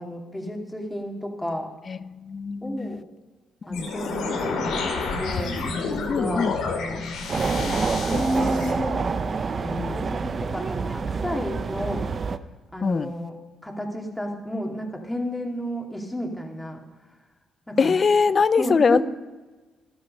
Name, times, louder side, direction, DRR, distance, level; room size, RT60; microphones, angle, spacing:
voice 1, 0.0-1.7 2.6-3.0 3.7-5.6 5.9-7.1 7.6-12.1 12.7-13.4 13.6-16.8 17.7-17.9 18.6-19.0, equal, 10° left, 1 dB, 2.4 m, -31 dB
voice 2, 1.9-3.0 3.7-3.9 6.1-6.5 9.8-10.0 12.8-13.1 17.8-19.0, left 5 dB, 40° left, 17 dB, 0.5 m, -22 dB
sound 1, 3.7-8.7, left 4 dB, 85° left, 2.7 m, -29 dB
sound 2, 7.3-12.4, right 5 dB, 40° right, 0.6 m, -27 dB
12.5 x 12.5 x 5.3 m, 1.3 s
cardioid pair, 90°, 0 cm